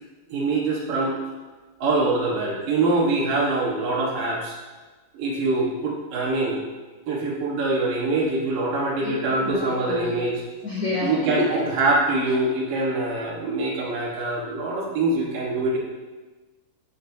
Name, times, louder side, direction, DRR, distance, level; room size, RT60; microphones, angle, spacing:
voice 1, 0.3-1.2 1.8-4.6 5.1-6.7 7.1-10.4 11.0-15.8, right 2 dB, 70° right, -3 dB, 2.9 m, -24 dB
voice 2, 9.9-10.2 10.6-11.6, left 3 dB, 35° left, -8 dB, 2.6 m, -27 dB
12.5 x 8.7 x 2.7 m, 1.3 s
omnidirectional pair, 4.3 m